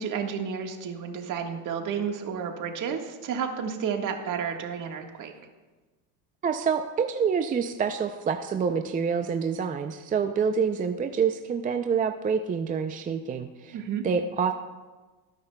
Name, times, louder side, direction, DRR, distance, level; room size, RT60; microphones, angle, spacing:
voice 1, 0.0-5.3 13.7-14.0, right 7 dB, 50° right, 4 dB, 1.5 m, -31 dB
voice 2, 6.4-13.8 14.0-14.5, right 6 dB, 20° right, 7 dB, 0.4 m, -27 dB
18.0 x 9.8 x 2.2 m, 1.3 s
supercardioid pair, 110°, 41 cm